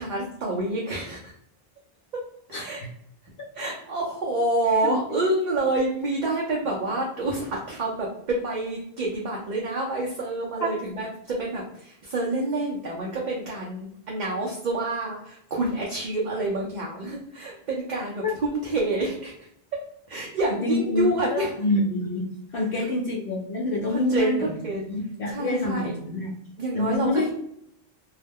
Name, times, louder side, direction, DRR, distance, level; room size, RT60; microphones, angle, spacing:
voice 1, 0.0-1.3 2.1-2.2 2.5-2.8 3.5-21.5 22.7-22.9 23.9-24.9 25.3-25.9 26.6-27.3, right 2 dB, 55° right, -3 dB, 0.6 m, -28 dB
voice 2, 20.6-22.3 22.5-24.5 24.9-26.3 26.7-27.3, left 2 dB, 65° left, -2 dB, 0.7 m, -26 dB
2.3 x 2.1 x 3.3 m, 0.74 s
omnidirectional pair, 1.1 m